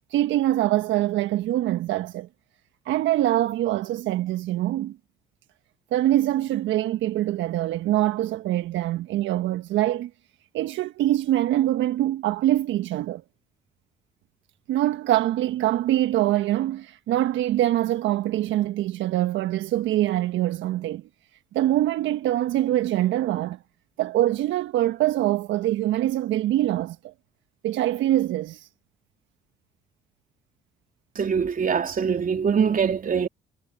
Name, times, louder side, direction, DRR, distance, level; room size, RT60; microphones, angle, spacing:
voice 1, 0.1-2.3 2.8-5.0 5.9-10.1 10.5-13.2 14.7-21.0 21.5-23.6 24.0-27.1 27.6-28.7, right 14 dB, 70° right, 1.3 m, -24 dB
voice 2, 31.1-33.3, right 6 dB, 45° right, 3.2 m, -23 dB
hypercardioid pair, 55°, 20 cm